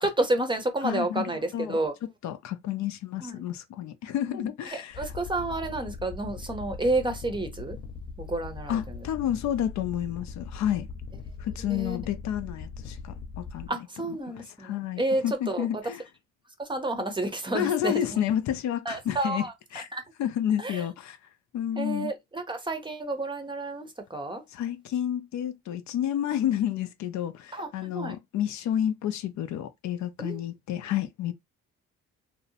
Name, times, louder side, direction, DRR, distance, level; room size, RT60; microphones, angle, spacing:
voice 1, 0.0-1.9 3.2-3.3 4.3-7.8 8.2-9.0 11.6-12.0 13.7-15.7 16.6-18.0 18.9-19.5 19.9-20.0 20.6-20.8 21.8-24.4 27.5-28.2 30.2-30.4, right 2 dB, 15° right, 0.6 m, -30 dB
voice 2, 0.8-1.8 2.2-5.1 8.7-10.9 11.4-13.7 14.1-16.0 17.5-19.5 19.7-19.8 20.2-21.2 21.5-22.1 24.5-31.3, left 10 dB, 70° left, 0.4 m, -30 dB
sound 1, 4.9-13.7, left 4 dB, 45° left, 0.8 m, -40 dB
2.7 x 2.0 x 2.7 m
cardioid pair, 90°, 30 cm